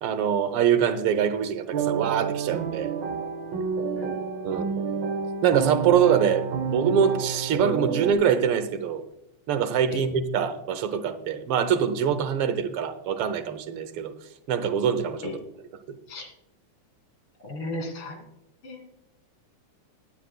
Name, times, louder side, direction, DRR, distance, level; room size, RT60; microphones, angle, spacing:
voice 1, 0.0-2.9 4.4-4.8 5.4-9.0 9.5-14.1 14.5-15.3 15.9-16.0, right 8 dB, 85° right, 11 dB, 1.8 m, -24 dB
sound 1, 1.7-8.1, right 6 dB, 65° right, 1.4 m, -29 dB
voice 2, 17.4-18.2 18.6-18.9, left 2 dB, 80° left, 4 dB, 3.0 m, -34 dB
19.5 x 9.1 x 2.2 m, 0.84 s
omnidirectional pair, 2.4 m